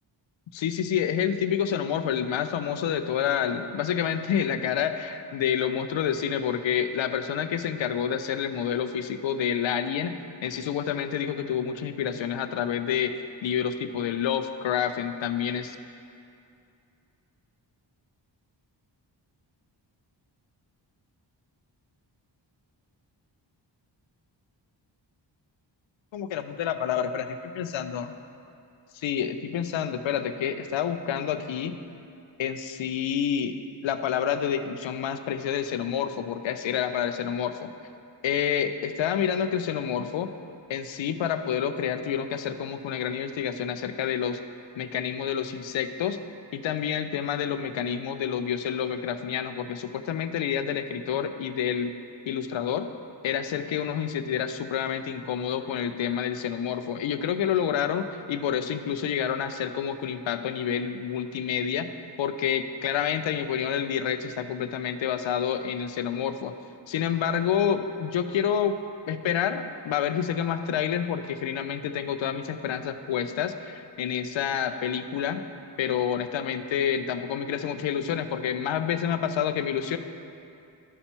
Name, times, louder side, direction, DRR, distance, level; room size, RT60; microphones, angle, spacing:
voice 1, 0.5-13.1 13.4-15.8 26.1-27.3 27.6-28.1 28.9-31.8 32.4-37.7 38.2-40.3 40.7-44.4 44.8-46.2 46.5-51.9 52.3-52.9 53.2-61.9 62.2-66.5 66.9-68.8 69.1-75.4 75.8-80.0, left 8 dB, 75° left, 9 dB, 0.6 m, -28 dB
12.0 x 5.4 x 3.0 m, 2.5 s
cardioid pair, 65°, 46 cm